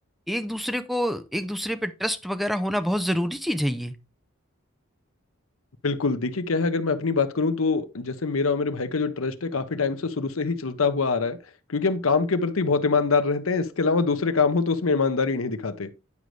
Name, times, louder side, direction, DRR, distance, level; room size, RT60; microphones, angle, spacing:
voice 1, 0.3-3.9, equal, ahead, 0.5 m, -27 dB
voice 2, 5.8-11.4 11.7-15.9, left 4 dB, 85° left, 0.8 m, -24 dB
9.6 x 5.2 x 3.2 m
head